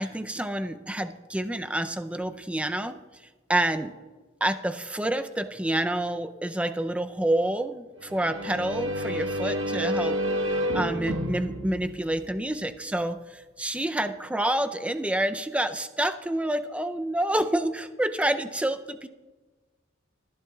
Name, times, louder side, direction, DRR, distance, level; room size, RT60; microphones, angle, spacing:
voice 1, 0.0-2.9 3.5-3.9 4.4-10.2 10.7-19.1, right 1 dB, 5° right, 9 dB, 0.5 m, -28 dB
sound 1, 8.0-12.8, equal, 80° right, 1.1 m, -30 dB
21.5 x 10.5 x 2.3 m, 1.3 s
head